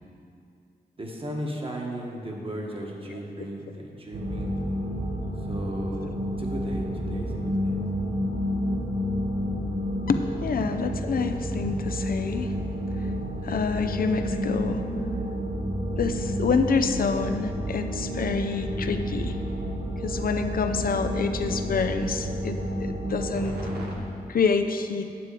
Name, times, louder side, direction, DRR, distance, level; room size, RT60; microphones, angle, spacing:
voice 1, 1.0-4.5 5.5-7.8, right 1 dB, 35° right, -1 dB, 1.6 m, -36 dB
sound 1, 4.1-24.0, equal, 85° right, 1.6 m, -30 dB
voice 2, 10.1-12.5 13.4-14.8 16.0-19.4 20.0-23.6 24.3-25.1, left 5 dB, 65° left, 7 dB, 0.6 m, -27 dB
9.4 x 7.4 x 4.9 m, 2.5 s
cardioid pair, 75°, 16 cm